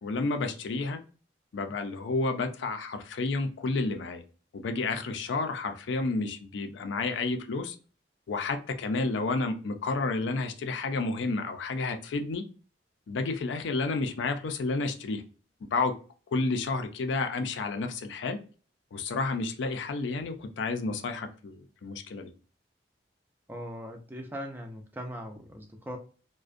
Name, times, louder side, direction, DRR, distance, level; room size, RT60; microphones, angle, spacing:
voice 1, 0.0-1.0 1.5-4.2 4.5-7.8 8.3-12.5 13.1-15.2 15.6-15.9 16.3-18.4 18.9-22.3, left 3 dB, 75° left, 0.4 m, -31 dB
voice 2, 23.5-26.0, equal, 10° right, 0.3 m, -40 dB
2.4 x 2.1 x 2.4 m
head